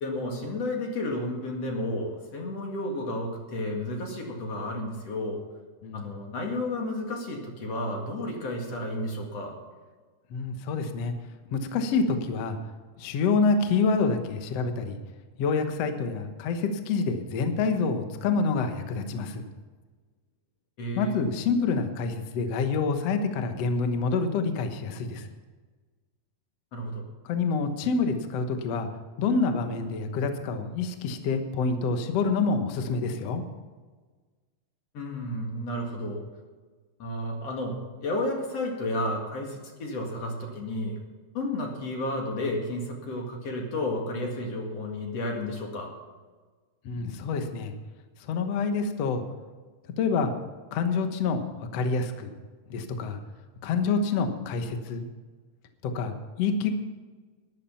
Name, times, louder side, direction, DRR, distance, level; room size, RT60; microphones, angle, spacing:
voice 1, 0.0-5.4 5.9-9.5 20.8-21.2 26.7-27.0 34.9-36.2 37.0-41.0 41.3-45.9, left 1 dB, 45° left, 1 dB, 2.6 m, -32 dB
voice 2, 10.3-11.1 11.5-12.6 13.0-15.0 15.4-19.4 20.9-25.3 27.2-28.9 29.2-33.4 46.8-47.7 48.2-49.2 50.0-50.3 50.7-52.3 52.7-53.2 53.6-55.0 55.8-56.7, left 4 dB, 75° left, 7 dB, 1.4 m, -27 dB
13.0 x 11.5 x 5.7 m, 1.4 s
omnidirectional pair, 4.8 m